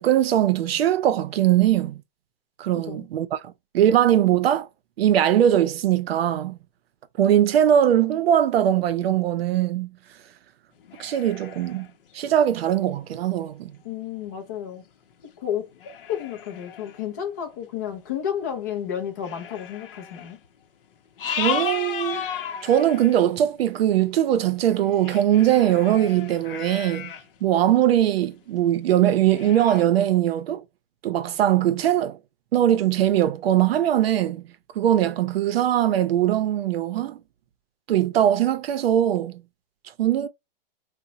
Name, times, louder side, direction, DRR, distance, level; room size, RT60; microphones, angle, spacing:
voice 1, 0.0-2.0 2.6-4.7 5.0-6.6 7.2-9.9 11.0-11.9 12.1-13.8 21.3-22.2 22.6-27.1 27.4-30.6 31.0-32.2 32.5-34.4 34.8-37.2 37.9-39.4 40.0-40.3, right 11 dB, 85° right, 0.6 m, -21 dB
voice 2, 2.7-3.1 13.8-14.8 15.4-20.4, left 9 dB, 20° left, 0.4 m, -32 dB
sound 1, 10.8-12.9 13.7-13.8 14.3-14.4 15.1-15.3 15.7-17.0 17.9-18.0 18.5-18.6 19.2-20.5 20.9-23.3 24.4-27.3 27.7-28.3 28.7-28.8 29.3-29.9, left 8 dB, 65° left, 0.6 m, -34 dB
2.8 x 2.1 x 3.9 m
hypercardioid pair, 175°, 29 cm